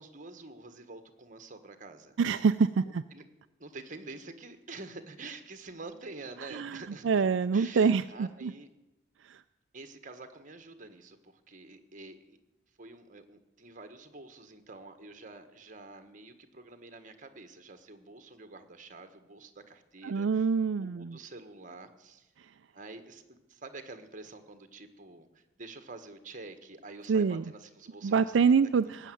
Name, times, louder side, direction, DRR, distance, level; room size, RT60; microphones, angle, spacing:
voice 1, 0.0-2.2 2.8-3.2 3.6-8.7 9.7-12.4 12.8-20.5 20.8-22.3 22.7-28.5, right 3 dB, 40° right, 8 dB, 1.4 m, -48 dB
voice 2, 2.2-3.0 6.4-8.5 9.2-9.4 20.0-21.2 22.4-22.5 27.1-27.4 28.0-29.1, right 5 dB, 70° right, 10 dB, 0.4 m, -26 dB
18.0 x 7.4 x 9.3 m, 0.98 s
head